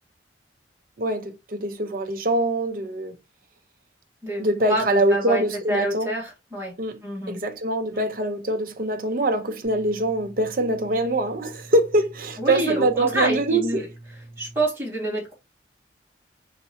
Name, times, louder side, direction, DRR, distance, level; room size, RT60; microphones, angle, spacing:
voice 1, 1.0-3.2 4.4-6.1 6.8-7.0 7.3-13.9, right 2 dB, 50° right, 0.6 m, -24 dB
voice 2, 4.2-5.4 5.7-6.7 7.0-7.4 7.9-8.0 12.4-13.9 14.4-15.3, right 1 dB, 15° right, 2.1 m, -27 dB
sound 1, 9.6-14.6, right 1 dB, 35° left, 1.6 m, -45 dB
4.3 x 3.2 x 2.9 m
head